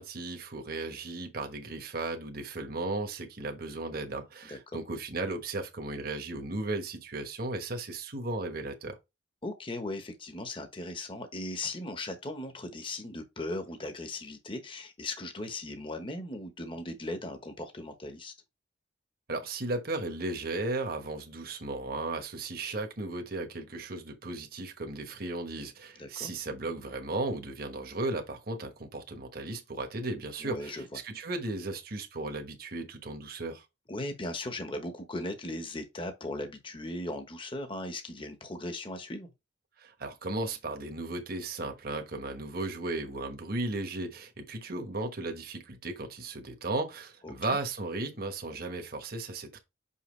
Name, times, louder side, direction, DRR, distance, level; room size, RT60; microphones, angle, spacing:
voice 1, 0.0-9.0 19.3-33.6 39.8-49.6, right 2 dB, 55° right, 1.2 m, -35 dB
voice 2, 9.4-18.3 26.0-26.3 30.4-30.8 33.9-39.3 47.2-47.6, left 2 dB, 25° left, 1.1 m, -38 dB
5.8 x 5.7 x 3.2 m
head